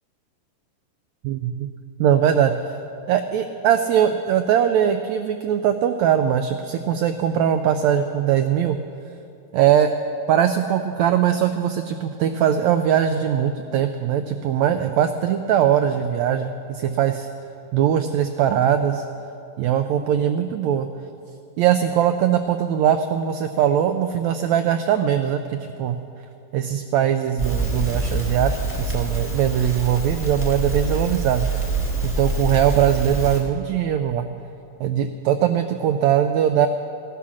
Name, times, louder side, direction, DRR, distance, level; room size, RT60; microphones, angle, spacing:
voice 1, 1.2-1.7 2.0-2.8 3.1-8.8 9.5-9.9 10.3-17.3 17.7-19.0 19.6-20.9 21.6-26.0 26.5-31.5 32.0-34.3 34.8-36.7, right 9 dB, 85° right, 8 dB, 1.6 m, -21 dB
Crackle, 27.4-33.4, right 2 dB, 10° left, 0.6 m, -26 dB
15.5 x 11.5 x 6.2 m, 2.7 s
omnidirectional pair, 3.7 m